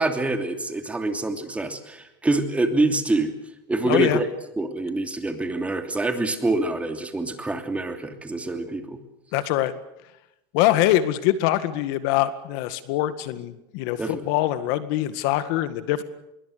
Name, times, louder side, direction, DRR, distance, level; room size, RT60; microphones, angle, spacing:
voice 1, 0.0-3.3 3.7-4.3 4.6-9.0 14.0-14.3, right 2 dB, 10° right, 6 dB, 3.0 m, -25 dB
voice 2, 3.8-4.2 9.3-9.7 10.5-16.0, left 14 dB, 65° left, 12 dB, 1.9 m, -23 dB
25.5 x 22.5 x 6.7 m, 0.87 s
supercardioid pair, 130°, 13 cm